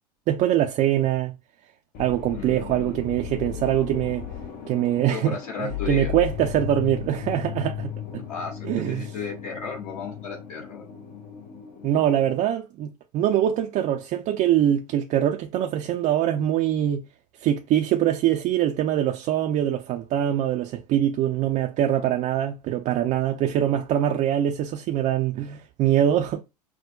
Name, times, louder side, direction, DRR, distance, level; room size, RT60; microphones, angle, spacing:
voice 1, 0.3-1.3 2.0-4.3 4.7-8.2 8.6-9.1 11.8-17.0 17.4-26.4, right 11 dB, 35° right, 0.4 m, -23 dB
sound 1, 1.9-12.4, left 10 dB, 45° left, 0.8 m, -36 dB
voice 2, 2.3-3.0 5.1-6.1 8.3-10.8, left 5 dB, 65° left, 1.7 m, -35 dB
5.9 x 2.1 x 2.3 m
figure-of-eight pair, 85°, 21 cm